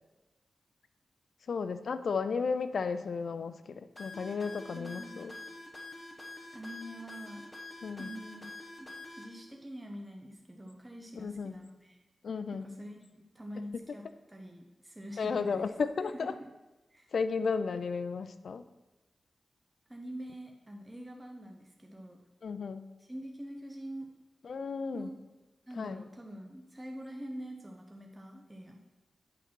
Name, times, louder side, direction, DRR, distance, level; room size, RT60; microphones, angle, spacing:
voice 1, 1.5-5.3 7.8-8.1 11.1-11.5 12.2-12.7 15.2-16.3 17.1-18.6 22.4-22.8 24.4-25.1 25.8-26.0, left 5 dB, 75° left, 11 dB, 0.4 m, -34 dB
sound 1, 4.0-9.2, left 2 dB, 25° left, 1.3 m, -46 dB
voice 2, 4.7-5.4 6.5-7.4 8.0-8.5 8.8-8.9 9.2-12.0 12.5-15.7 16.1-16.3 16.9-17.1 19.9-22.2 23.0-24.1 24.9-25.1 25.7-28.8, equal, 15° right, 1 dB, 0.7 m, -45 dB
8.5 x 4.0 x 6.1 m, 1.1 s
wide cardioid pair, 120°, 0 cm